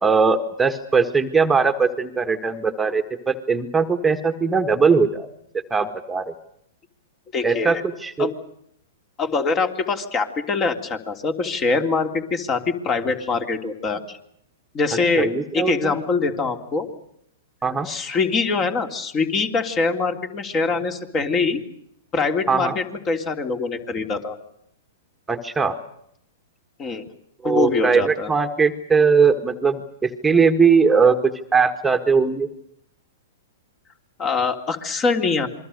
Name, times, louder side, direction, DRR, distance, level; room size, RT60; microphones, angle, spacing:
voice 1, 0.0-5.3 5.7-6.3 7.4-8.3 15.2-15.9 17.6-17.9 22.5-22.8 25.3-25.8 27.4-32.5, right 5 dB, 10° right, 7 dB, 1.7 m, -20 dB
voice 2, 7.3-7.8 8.2-8.3 9.2-14.2 14.7-15.3 15.5-16.8 17.8-21.6 22.1-24.4 26.8-27.1 27.4-28.3 34.2-35.5, left 4 dB, 30° left, 7 dB, 3.4 m, -23 dB
27.5 x 22.0 x 6.7 m, 0.73 s
hypercardioid pair, 115°, 0 cm